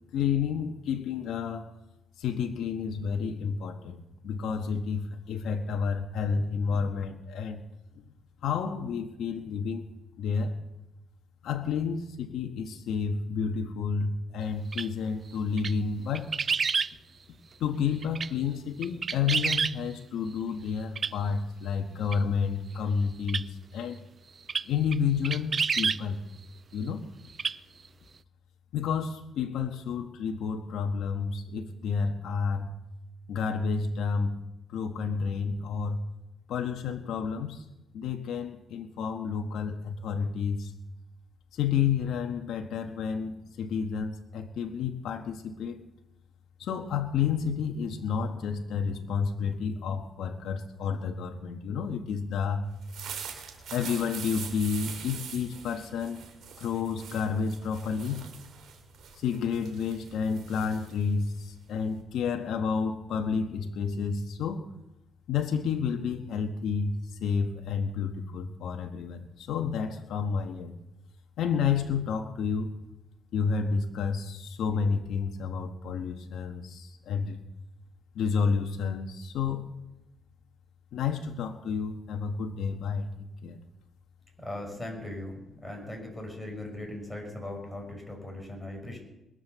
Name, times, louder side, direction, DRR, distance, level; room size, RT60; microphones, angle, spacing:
voice 1, 0.1-1.7 2.2-7.6 7.9-8.0 8.4-9.9 10.2-10.5 11.4-16.3 17.6-24.0 24.6-26.2 26.7-27.1 28.7-32.7 33.3-34.3 34.7-36.0 36.5-37.6 37.9-40.7 41.5-45.8 46.6-52.7 53.7-56.2 56.6-58.2 59.1-64.7 65.3-66.9 67.2-70.7 71.4-72.7 73.3-77.4 78.1-79.6 80.9-83.6, left 6 dB, 80° left, 3 dB, 1.4 m, -30 dB
sound 1, 14.7-14.9 15.6-15.7 16.1-16.9 18.0-18.3 18.8-19.7 20.9-21.1 22.1-22.2 23.3-23.4 24.5-24.6 24.9-25.0 25.2-26.0 27.3-27.6 27.8-27.9, right 5 dB, 40° right, 0.4 m, -28 dB
sound 2, 52.7-62.0, right 7 dB, 70° right, 3.1 m, -43 dB
voice 2, 84.4-89.0, left 1 dB, 5° left, 1 dB, 6.4 m, -39 dB
21.5 x 8.0 x 6.9 m, 0.94 s
cardioid pair, 90°, 0 cm